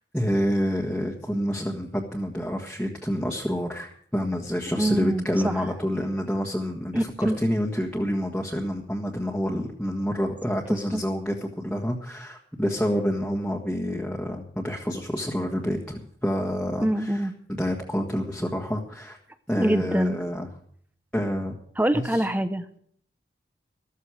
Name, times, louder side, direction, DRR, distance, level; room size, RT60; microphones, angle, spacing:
voice 1, 0.1-17.3 17.6-19.2 19.5-20.5 21.1-21.5 21.9-22.3, equal, 5° left, -2 dB, 1.6 m, -28 dB
voice 2, 4.8-5.6 6.9-7.4 10.9-11.0 16.8-17.3 19.6-20.2 21.8-22.7, right 1 dB, 10° right, 11 dB, 0.8 m, -25 dB
14.0 x 13.5 x 4.9 m, 0.62 s
head